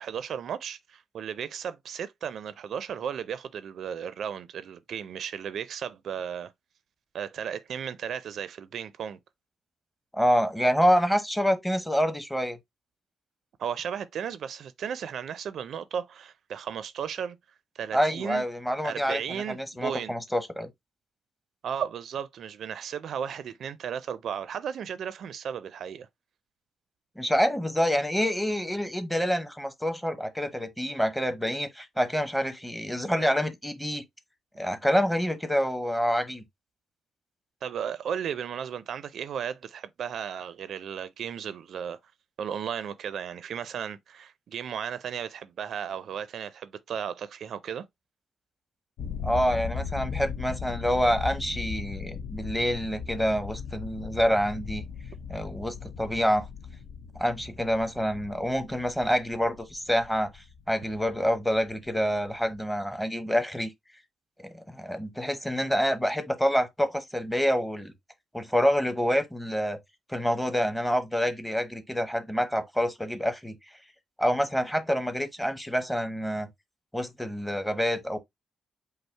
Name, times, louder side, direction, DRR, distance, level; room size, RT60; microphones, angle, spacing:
voice 1, 0.0-6.5 7.1-9.2 13.6-17.4 17.8-18.4 18.8-20.1 21.6-26.1 37.6-42.0 42.4-47.8, right 8 dB, 60° right, 0.4 m, -35 dB
voice 2, 10.1-12.6 17.9-20.7 27.2-34.0 34.6-36.4 49.2-54.8 55.3-56.5 57.1-63.7 64.4-67.9 68.3-69.8 70.1-73.6 74.2-76.5 76.9-78.2, equal, 5° left, 0.8 m, -27 dB
sound 1, 49.0-62.6, left 6 dB, 85° left, 0.6 m, -38 dB
5.3 x 2.0 x 4.4 m
cardioid pair, 145°, 0 cm